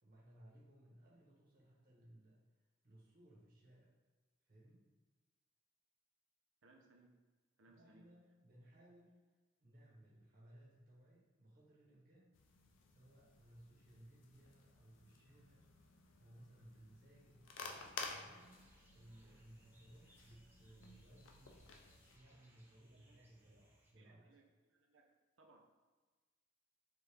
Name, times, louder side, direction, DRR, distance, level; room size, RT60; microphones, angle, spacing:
voice 1, 0.0-3.9 4.4-4.9 7.7-9.2 9.6-12.4 12.9-15.7 16.2-17.5 18.2-21.7 22.1-24.4, right 1 dB, 50° right, -6 dB, 1.0 m, -63 dB
voice 2, 6.6-7.1 7.6-8.1 22.9-23.3 24.0-24.5 24.7-25.1 25.4-25.6, right 2 dB, 75° right, 1 dB, 0.7 m, -67 dB
sound 1, 12.3-22.2, left 4 dB, 75° left, 0.5 m, -54 dB
sound 2, 18.3-23.9, equal, 10° right, 0.6 m, -71 dB
4.8 x 2.5 x 3.3 m, 1.3 s
head